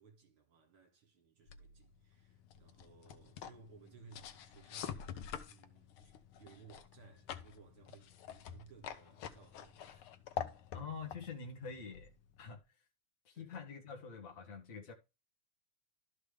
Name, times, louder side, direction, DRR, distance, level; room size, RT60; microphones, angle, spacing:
voice 1, 0.0-10.1 11.1-11.2 13.3-13.6, right 5 dB, 50° right, 2.7 m, -61 dB
sound 1, 1.5-12.6, left 9 dB, 85° left, 1.1 m, -47 dB
voice 2, 10.7-12.1 12.4-12.6 13.2-14.9, left 5 dB, 40° left, 1.2 m, -46 dB
12.0 x 5.3 x 3.4 m
omnidirectional pair, 3.4 m